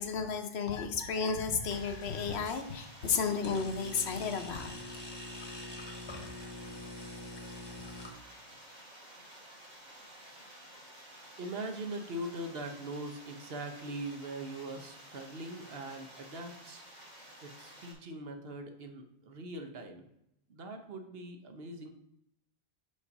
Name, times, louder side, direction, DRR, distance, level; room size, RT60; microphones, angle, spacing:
voice 1, 0.0-4.7, left 5 dB, 75° left, 6 dB, 1.0 m, -33 dB
sound 1, 0.7-1.2 1.6-2.6 3.4-8.1, left 1 dB, 25° left, 1.0 m, -45 dB
sound 2, 1.7-17.9, right 1 dB, 40° right, 2.0 m, -53 dB
voice 2, 11.2-16.8 17.4-20.0 20.5-21.9, right 1 dB, 65° right, 5 dB, 1.0 m, -41 dB
5.2 x 4.1 x 5.3 m, 0.78 s
omnidirectional pair, 1.1 m